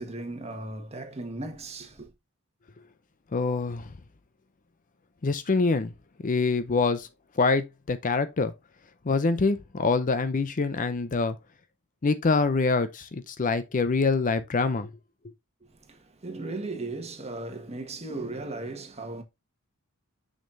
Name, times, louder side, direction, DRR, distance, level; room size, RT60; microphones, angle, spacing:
voice 1, 0.0-2.1 15.6-19.2, right 2 dB, 30° right, 1.4 m, -37 dB
voice 2, 3.3-3.9 5.2-5.9 6.2-7.1 7.4-8.5 9.0-11.4 12.0-14.9, left 4 dB, 35° left, 0.5 m, -25 dB
6.5 x 6.3 x 2.6 m
head